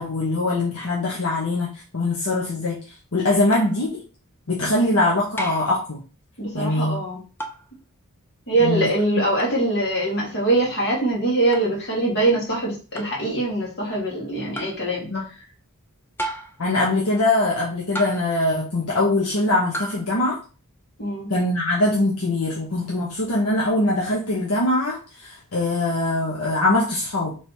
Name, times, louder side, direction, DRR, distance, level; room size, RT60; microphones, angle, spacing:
voice 1, 0.0-1.7 1.9-2.8 3.1-4.0 4.5-6.0 6.5-7.0 8.6-9.2 15.1-15.2 16.6-20.4 21.3-27.4, left 2 dB, 75° left, -4 dB, 1.0 m, -22 dB
sound 1, 3.5-3.8 5.4-5.8 7.4-7.7 9.4-9.6 11.5-11.7 13.0-13.2 14.5-14.8 16.2-16.6 17.9-18.4 19.7-20.0, right 1 dB, 10° left, 0.5 m, -33 dB
voice 2, 6.4-7.2 8.5-15.1 21.0-21.3, right 2 dB, 50° left, -4 dB, 2.2 m, -23 dB
3.4 x 3.2 x 4.2 m, 0.34 s
head